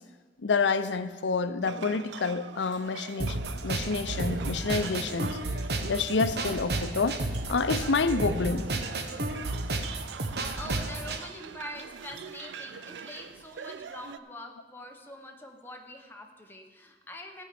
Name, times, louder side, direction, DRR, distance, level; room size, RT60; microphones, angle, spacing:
voice 1, 0.4-5.4 5.8-8.7, left 4 dB, 85° left, 12 dB, 0.6 m, -28 dB
sound 1, 1.6-14.2, right 6 dB, 80° right, 0.4 m, -43 dB
sound 2, 3.2-11.2, right 2 dB, 60° right, 1.0 m, -32 dB
voice 2, 10.6-17.4, left 1 dB, 10° left, 2 dB, 1.0 m, -44 dB
15.0 x 5.4 x 6.8 m, 1.4 s
head